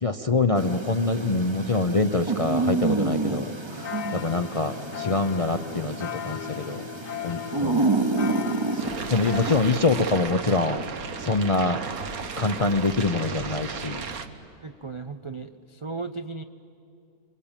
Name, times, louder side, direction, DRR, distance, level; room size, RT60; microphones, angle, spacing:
voice 1, 0.0-6.8 7.2-7.9 8.7-10.8 11.2-11.8 12.4-14.1, left 3 dB, 40° left, 8 dB, 0.5 m, -25 dB
sound 1, 0.6-9.7, right 3 dB, 20° right, 1.0 m, -29 dB
sound 2, 3.8-9.6, left 10 dB, 70° left, 1.2 m, -37 dB
sound 3, 8.8-14.3, right 5 dB, 85° right, 1.7 m, -34 dB
voice 2, 14.6-16.4, right 4 dB, 40° right, 8 dB, 0.4 m, -36 dB
26.5 x 24.5 x 9.0 m, 2.8 s
omnidirectional pair, 1.5 m